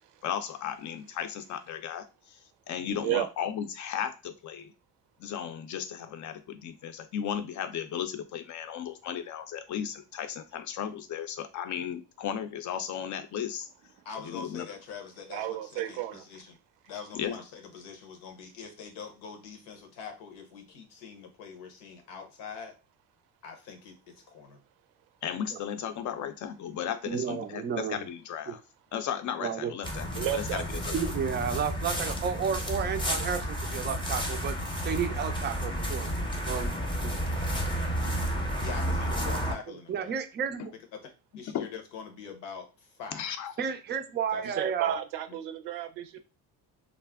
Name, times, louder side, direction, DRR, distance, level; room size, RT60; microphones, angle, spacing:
voice 1, 0.2-2.4 2.7-4.7 5.2-13.7 14.2-14.7 17.1-17.4 25.2-28.6 28.9-30.9 40.6-40.7 41.5-41.7 43.1-43.5, left 9 dB, 45° left, 10 dB, 0.5 m, -35 dB
voice 2, 3.0-3.3 14.0-14.1 15.3-16.4 30.1-30.8 44.4-46.2, right 13 dB, 85° right, 10 dB, 0.6 m, -33 dB
voice 3, 14.0-16.6 16.9-22.8 23.4-24.6 38.6-40.2 40.7-43.3 44.3-44.5, left 6 dB, 85° left, 6 dB, 0.9 m, -44 dB
voice 4, 27.1-28.0 28.5-28.6 29.4-29.7 30.9-34.6 34.8-36.1 36.5-36.8 37.0-37.2 39.9-40.7 43.6-45.0, right 7 dB, 30° right, 8 dB, 0.3 m, -31 dB
sound 1, 29.8-39.5, equal, 10° left, 0.7 m, -31 dB
2.4 x 2.0 x 3.4 m, 0.30 s
cardioid pair, 95°, 40 cm